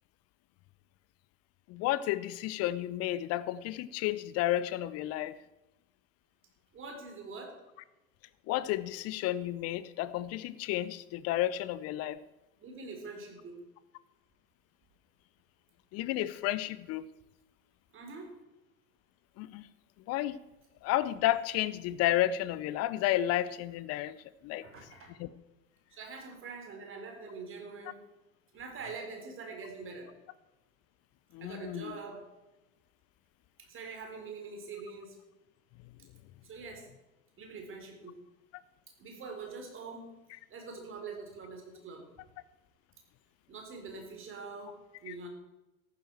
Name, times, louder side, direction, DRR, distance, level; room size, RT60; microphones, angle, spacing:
voice 1, 1.7-5.3 8.5-12.2 15.9-17.0 19.4-19.6 20.1-20.4 20.8-24.2 24.4-24.7 25.2-25.3 31.3-31.9 45.1-45.2, left 14 dB, 35° left, 16 dB, 0.8 m, -31 dB
voice 2, 6.7-7.6 12.6-13.6 17.9-18.4 24.6-25.1 25.9-28.0 28.5-30.1 31.4-32.3 33.6-35.2 36.4-36.9 37.4-38.2 39.0-40.2 40.5-42.1 43.5-45.3, right 4 dB, 30° right, 3 dB, 4.0 m, -44 dB
14.0 x 12.0 x 4.6 m, 1.0 s
figure-of-eight pair, 85°, 41 cm